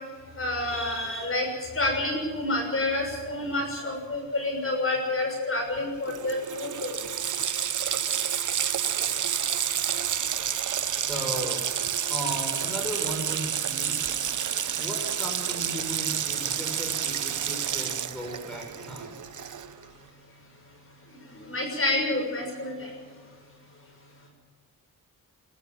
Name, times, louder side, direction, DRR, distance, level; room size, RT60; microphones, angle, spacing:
voice 1, 0.4-1.5 1.7-6.9 21.5-22.9, left 2 dB, 35° left, 1 dB, 6.4 m, -28 dB
Water tap faucet, 5.8-5.9 6.1-19.8, right 9 dB, 55° right, 1.0 m, -29 dB
voice 2, 10.9-11.6 12.1-14.0 14.8-19.2, right 1 dB, ahead, 0 dB, 6.9 m, -36 dB
22.5 x 13.5 x 9.2 m, 1.5 s
wide cardioid pair, 125°, 36 cm